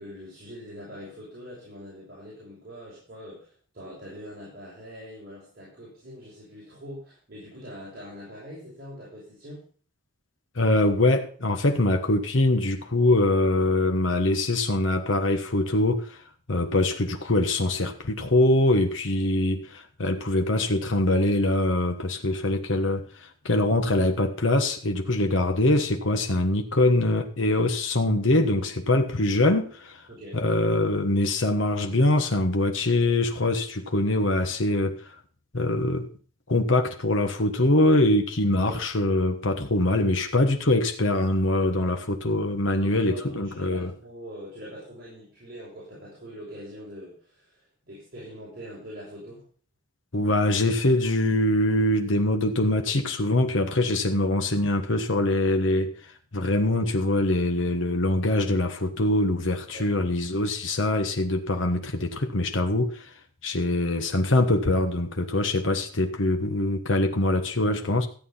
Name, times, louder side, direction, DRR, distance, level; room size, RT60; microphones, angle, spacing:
voice 1, 0.0-9.7 30.1-30.4 38.6-38.8 42.8-49.4 59.7-59.9, equal, 50° right, 5.9 m, -43 dB
voice 2, 10.5-16.2 16.5-30.1 30.3-35.1 35.5-36.1 36.5-43.9 50.1-55.9 56.3-63.1 63.4-68.1, left 1 dB, 75° left, 1.4 m, -23 dB
14.0 x 8.6 x 5.7 m
head